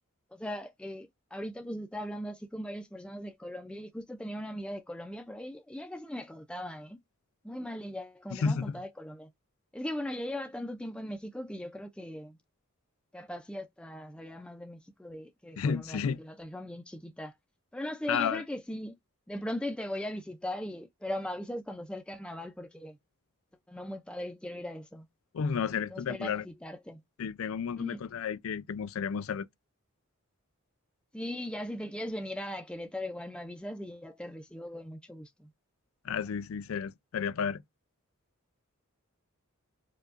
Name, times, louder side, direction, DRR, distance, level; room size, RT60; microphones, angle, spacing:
voice 1, 0.3-7.0 7.4-9.3 9.7-12.4 13.1-17.3 17.7-19.0 19.3-23.0 23.7-25.1 25.9-27.0 27.8-28.0 31.1-35.5, left 1 dB, 5° left, 0.4 m, -39 dB
voice 2, 8.3-8.8 15.6-16.2 18.1-18.4 25.3-26.4 27.2-29.5 36.0-37.6, left 6 dB, 70° left, 0.4 m, -32 dB
4.6 x 2.2 x 2.5 m
head